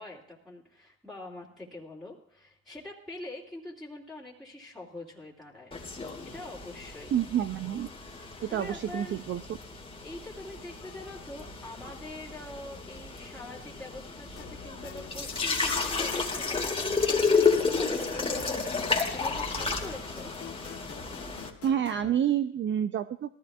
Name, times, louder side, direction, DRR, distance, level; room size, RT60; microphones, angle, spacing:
voice 1, 0.0-5.7 6.2-7.1 8.5-9.2 10.0-18.5 18.8-20.3, left 1 dB, ahead, -6 dB, 2.7 m, -44 dB
sound 1, 5.7-21.5, left 4 dB, 20° left, 2.0 m, -31 dB
voice 2, 7.1-7.9 8.4-9.4 21.6-23.3, right 10 dB, 40° right, 11 dB, 0.5 m, -28 dB
sound 2, 14.4-22.1, left 8 dB, 50° left, 1.2 m, -47 dB
18.5 x 14.5 x 2.4 m, 0.70 s
supercardioid pair, 75°, 30 cm